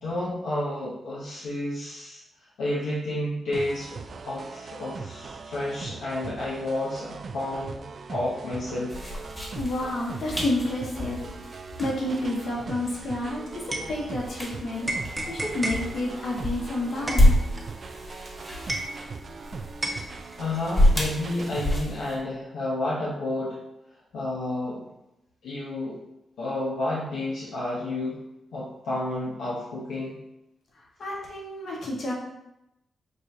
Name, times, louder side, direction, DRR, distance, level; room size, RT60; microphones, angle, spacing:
voice 1, 0.0-2.2 2.6-4.0 4.2-8.9 20.4-23.6 24.1-24.8 25.4-26.0 26.4-28.2 28.5-30.2, left 1 dB, 85° left, -7 dB, 0.8 m, -30 dB
sound 1, 3.5-21.8, right 4 dB, 55° right, 0.3 m, -40 dB
sound 2, 8.9-22.2, left 1 dB, 20° left, 1.3 m, -28 dB
voice 2, 9.5-11.2 11.8-13.6 13.9-14.9 15.3-17.3 31.0-32.1, left 1 dB, 65° left, -3 dB, 1.3 m, -29 dB
sound 3, 13.3-14.5 14.8-19.4 19.8-20.9, right 1 dB, 20° right, 0.9 m, -34 dB
6.1 x 2.4 x 2.7 m, 0.87 s
cardioid pair, 60°, 0 cm